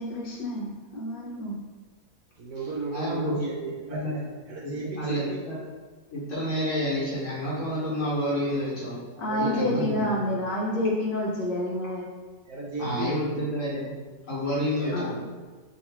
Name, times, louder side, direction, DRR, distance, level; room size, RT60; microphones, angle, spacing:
voice 1, 0.0-1.6 9.2-12.1 14.9-15.2, left 1 dB, 70° left, -4 dB, 1.4 m, -28 dB
voice 2, 2.4-5.4 9.1-10.1 12.5-13.2 14.8-15.1, right 3 dB, 70° right, -4 dB, 0.9 m, -35 dB
voice 3, 2.9-3.4 3.9-4.2 4.6-4.7 5.0-5.5 6.1-9.0 9.3-10.0 12.8-13.9 14.3-15.1, equal, 50° left, -7 dB, 1.4 m, -29 dB
3.1 x 2.9 x 4.1 m, 1.4 s
omnidirectional pair, 2.0 m